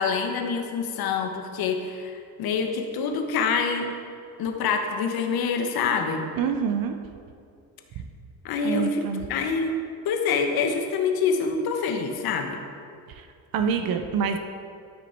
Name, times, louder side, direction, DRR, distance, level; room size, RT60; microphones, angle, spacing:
voice 1, 0.0-3.9 4.4-6.2 8.4-9.0 9.3-9.8 10.0-12.6, left 5 dB, 65° left, 4 dB, 1.3 m, -26 dB
voice 2, 6.4-7.0 8.6-9.2 13.1-13.3 13.5-14.4, right 6 dB, 60° right, 6 dB, 0.8 m, -26 dB
13.0 x 6.2 x 4.5 m, 2.3 s
cardioid pair, 125°, 39 cm